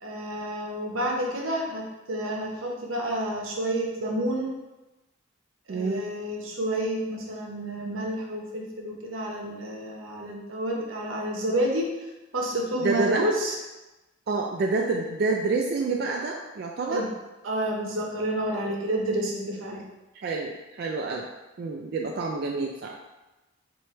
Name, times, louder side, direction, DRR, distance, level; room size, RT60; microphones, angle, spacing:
voice 1, 0.0-4.5 5.7-11.8 12.3-13.5 16.9-17.1 17.4-19.8, right 1 dB, 85° right, -1 dB, 0.9 m, -29 dB
voice 2, 5.7-6.1 12.8-13.3 14.3-17.0 20.1-21.3 21.6-23.0, right 3 dB, 50° right, 0 dB, 0.3 m, -28 dB
3.2 x 3.0 x 4.3 m, 1.1 s
head